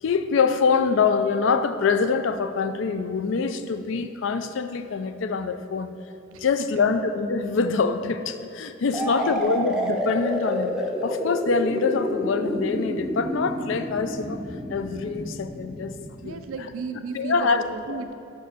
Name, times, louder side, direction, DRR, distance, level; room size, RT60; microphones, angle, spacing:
voice 1, 0.0-5.9 6.4-10.7 11.0-14.4 14.7-15.9 16.2-16.4 17.1-17.7, left 5 dB, 70° left, 10 dB, 0.4 m, -24 dB
voice 2, 8.8-9.4 16.2-18.1, right 4 dB, 85° right, 8 dB, 0.5 m, -35 dB
sound 1, 8.9-16.6, equal, 5° right, 0.4 m, -29 dB
5.5 x 4.5 x 6.3 m, 2.7 s
head